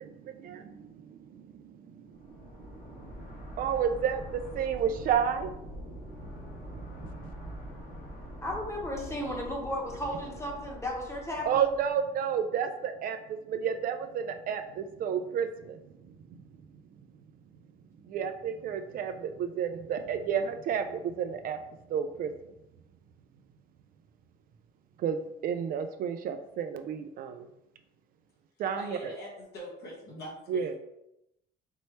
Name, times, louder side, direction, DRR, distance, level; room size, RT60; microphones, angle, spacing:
voice 1, 0.0-5.5 5.8-6.0 6.3-7.6 7.9-8.0 11.5-13.2 13.5-15.8 18.1-21.6 21.9-22.3 25.0-27.5 28.6-29.1 30.5-30.7, right 7 dB, 55° right, 7 dB, 0.4 m, -32 dB
sound 1, 2.1-12.0, left 1 dB, 45° left, 1.2 m, -44 dB
voice 2, 8.4-11.6, left 1 dB, 15° left, 0 dB, 1.0 m, -34 dB
voice 3, 28.7-30.7, equal, 75° left, -4 dB, 1.4 m, -43 dB
4.4 x 3.0 x 3.1 m, 0.85 s
cardioid pair, 110°, 17 cm